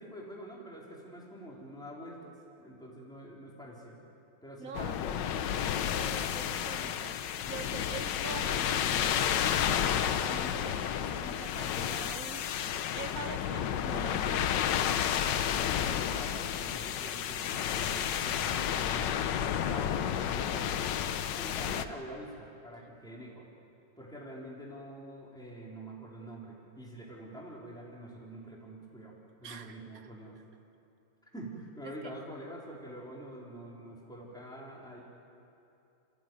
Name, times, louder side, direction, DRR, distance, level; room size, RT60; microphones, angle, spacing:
voice 1, 0.0-4.0 4.4-5.5 15.5-19.3 19.7-20.9 21.3-23.5 24.0-29.1 29.4-30.4 31.3-35.0, right 1 dB, ahead, -4 dB, 3.8 m, -46 dB
voice 2, 4.6-5.0 6.0-12.5 12.9-14.5 29.4-30.1 31.8-32.1, right 5 dB, 55° right, 8 dB, 1.5 m, -45 dB
sound 1, 4.7-21.9, left 9 dB, 85° left, 1.5 m, -31 dB
27.0 x 15.5 x 9.3 m, 2.7 s
omnidirectional pair, 1.9 m